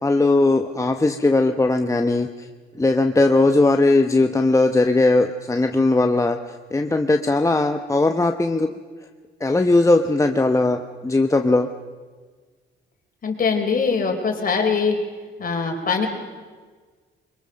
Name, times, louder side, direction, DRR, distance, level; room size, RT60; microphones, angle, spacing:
voice 1, 0.0-2.5 2.8-6.4 6.7-8.7 9.4-11.7, left 2 dB, 15° left, 5 dB, 0.9 m, -19 dB
voice 2, 13.2-15.0 15.4-16.1, left 5 dB, 45° left, 3 dB, 4.0 m, -22 dB
23.5 x 22.0 x 6.5 m, 1.5 s
cardioid pair, 90°, 20 cm